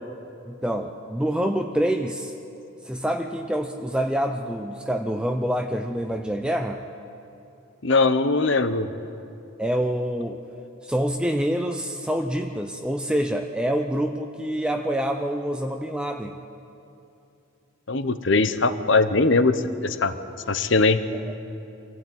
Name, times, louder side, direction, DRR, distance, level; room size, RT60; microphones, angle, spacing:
voice 1, 0.5-2.3 2.8-6.8 9.6-10.4 10.8-16.3 21.1-21.3, equal, 5° right, 4 dB, 0.6 m, -26 dB
voice 2, 7.8-8.9 17.9-20.1 20.5-21.0, left 3 dB, 60° left, 11 dB, 1.0 m, -21 dB
26.0 x 16.0 x 8.7 m, 2.8 s
head